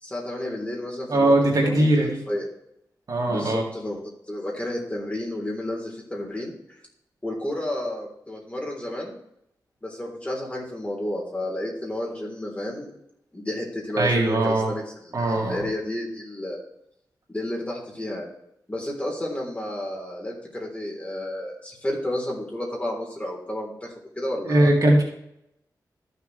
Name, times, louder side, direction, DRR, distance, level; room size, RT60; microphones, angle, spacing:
voice 1, 0.0-1.9 2.3-2.5 3.3-6.5 7.2-9.1 9.8-12.9 13.3-16.6 17.3-18.3 18.7-24.7, left 1 dB, 20° left, -2 dB, 3.7 m, -31 dB
voice 2, 1.1-2.2 3.1-3.6 14.0-14.7 15.1-15.6 24.4-25.0, right 1 dB, 60° right, -1 dB, 2.5 m, -20 dB
14.0 x 6.8 x 3.3 m, 0.78 s
cardioid pair, 70°, 7 cm